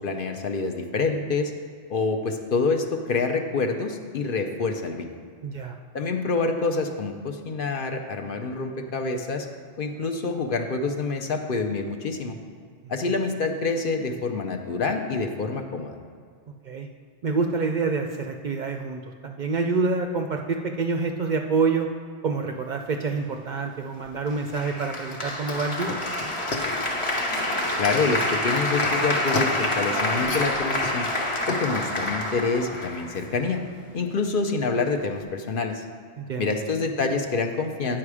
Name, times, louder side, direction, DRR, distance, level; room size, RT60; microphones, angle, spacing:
voice 1, 0.0-1.5 1.9-5.1 5.9-9.5 9.8-12.4 12.9-15.9 27.8-31.1 31.5-33.6 33.9-35.8 36.4-38.0, left 4 dB, 55° left, 5 dB, 0.8 m, -27 dB
voice 2, 5.4-5.8 16.6-16.9 17.2-21.9 22.2-26.0 36.2-36.5, right 4 dB, 55° right, 4 dB, 0.5 m, -27 dB
sound 1, 23.8-33.1, left 3 dB, 75° left, 1.2 m, -36 dB
Applause, 24.5-33.6, left 1 dB, 30° left, 1.0 m, -27 dB
9.7 x 5.9 x 4.8 m, 2.1 s
omnidirectional pair, 1.1 m